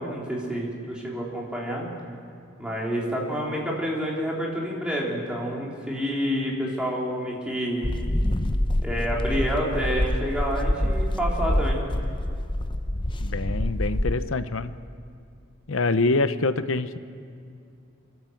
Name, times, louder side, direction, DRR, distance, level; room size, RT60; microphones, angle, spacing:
voice 1, 0.0-1.9 2.6-7.9 8.8-11.8, equal, 5° right, -4 dB, 3.5 m, -28 dB
sound 1, 7.8-14.3, left 1 dB, 25° left, 0.7 m, -26 dB
voice 2, 13.2-14.7 15.7-17.0, left 3 dB, 75° left, 12 dB, 0.8 m, -25 dB
28.0 x 12.5 x 7.8 m, 2.4 s
head